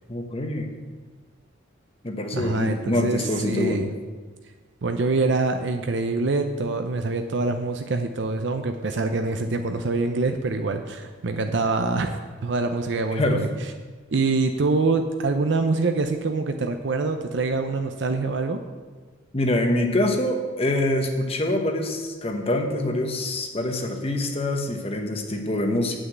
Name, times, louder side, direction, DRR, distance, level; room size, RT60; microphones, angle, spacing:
voice 1, 0.1-0.7 2.0-3.9 13.1-13.4 19.3-26.0, left 1 dB, 30° left, 3 dB, 1.0 m, -25 dB
voice 2, 2.3-3.9 4.8-13.5 14.1-18.6, right 3 dB, 60° right, 6 dB, 0.6 m, -25 dB
8.2 x 6.3 x 8.0 m, 1.4 s
head